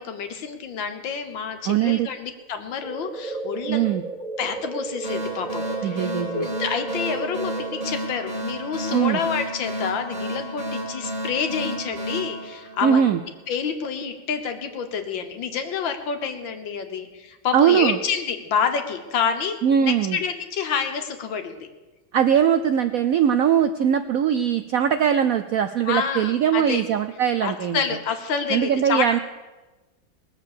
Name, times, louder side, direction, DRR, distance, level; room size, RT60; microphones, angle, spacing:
voice 1, 0.0-3.9 4.4-13.1 13.5-21.7 25.9-26.8 27.4-29.2, left 6 dB, 80° left, 7 dB, 1.9 m, -28 dB
voice 2, 1.7-2.1 3.7-4.0 5.8-6.5 8.9-9.2 12.8-13.2 17.5-18.0 19.6-20.2 22.1-27.8 28.5-29.2, right 9 dB, 75° right, 9 dB, 0.7 m, -21 dB
sound 1, 2.8-7.8, right 3 dB, 35° right, 0.7 m, -33 dB
sound 2, 5.0-13.4, right 1 dB, 15° left, 4.6 m, -32 dB
19.5 x 7.4 x 6.8 m, 1.2 s
omnidirectional pair, 2.1 m